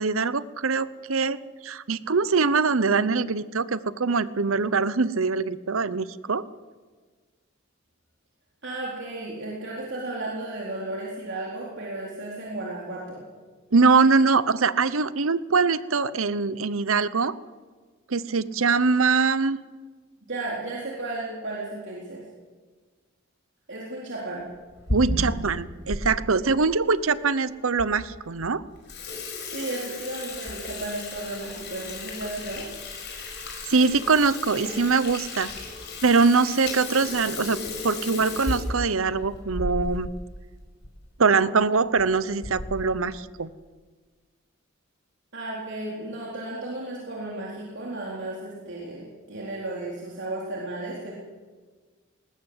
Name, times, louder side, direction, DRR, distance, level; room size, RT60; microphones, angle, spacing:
voice 1, 0.0-1.4 1.6-6.4 13.7-17.4 18.1-19.6 24.9-28.6 33.7-35.5 36.0-40.1 41.2-43.5, right 4 dB, 80° right, 16 dB, 0.9 m, -23 dB
voice 2, 8.6-13.2 20.3-22.2 23.7-24.5 29.5-32.6 45.3-51.1, right 2 dB, 60° right, -4 dB, 4.0 m, -34 dB
Water tap faucet / Sink (filling or washing), 24.6-26.0 26.5-26.6 27.3-27.4 27.8-27.9 28.3-28.5 28.8-40.2 40.5-40.6 40.8-41.0 41.8-42.0 42.4-42.9, left 2 dB, 55° left, 5.8 m, -34 dB
20.0 x 19.5 x 8.1 m, 1.4 s
head